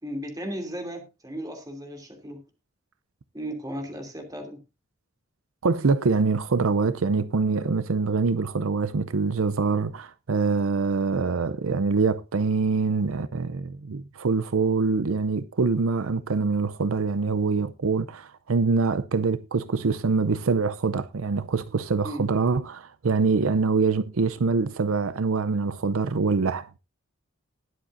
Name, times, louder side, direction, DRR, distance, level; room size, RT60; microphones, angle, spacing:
voice 1, 0.0-2.4 3.3-4.6 22.0-22.2, equal, 20° right, 2.9 m, -35 dB
voice 2, 5.6-26.7, right 4 dB, 80° right, 0.6 m, -24 dB
20.0 x 7.5 x 2.6 m
head